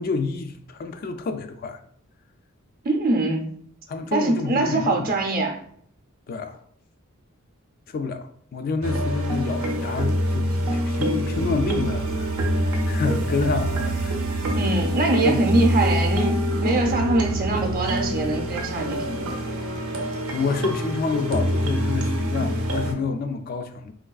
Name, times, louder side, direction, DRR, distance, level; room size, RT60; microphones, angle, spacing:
voice 1, 0.0-1.8 3.9-5.1 6.3-6.6 7.9-14.5 15.2-15.4 20.3-23.9, left 4 dB, 45° left, 0.3 m, -28 dB
voice 2, 2.8-3.5 4.1-5.6 14.6-19.4, right 2 dB, 45° right, 0.6 m, -23 dB
sound 1, 8.8-22.9, equal, 90° right, 0.6 m, -25 dB
3.4 x 3.0 x 2.3 m
head